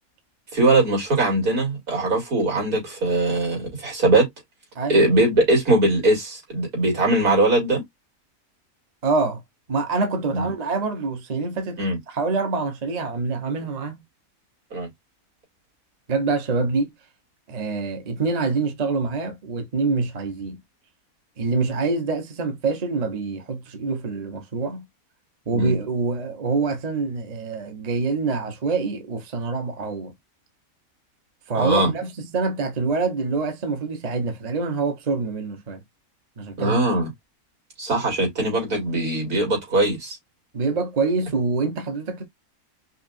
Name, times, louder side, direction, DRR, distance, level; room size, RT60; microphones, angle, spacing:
voice 1, 0.5-4.3 4.9-7.8 10.3-10.5 11.8-12.0 14.7-14.9 25.5-25.7 31.5-31.9 36.6-37.1 37.8-40.2, right 2 dB, 75° right, 3.1 m, -21 dB
voice 2, 9.0-9.4 9.7-14.0 16.1-16.9 17.5-20.6 21.4-24.8 25.5-30.1 31.5-35.8 36.4-36.8 40.5-42.2, right 4 dB, 35° right, 0.8 m, -25 dB
5.5 x 2.5 x 2.6 m
omnidirectional pair, 1.6 m